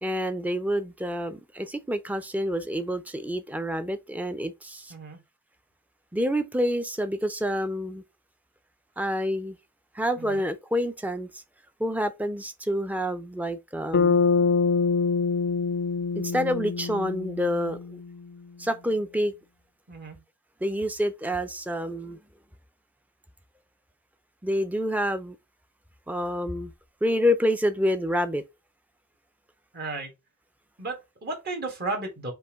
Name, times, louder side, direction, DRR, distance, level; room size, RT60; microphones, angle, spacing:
voice 1, 0.0-4.9 6.1-8.0 9.0-9.6 9.9-11.4 11.8-14.2 16.1-18.0 18.6-19.3 20.6-22.2 24.4-25.4 26.1-26.7 27.0-28.4, equal, 10° right, 0.5 m, -28 dB
voice 2, 4.9-5.2 10.2-10.4 19.9-20.2 29.7-30.1 30.8-32.3, right 3 dB, 50° right, 1.5 m, -34 dB
Bass guitar, 13.9-18.3, left 5 dB, 55° left, 0.4 m, -25 dB
5.4 x 2.5 x 3.5 m
head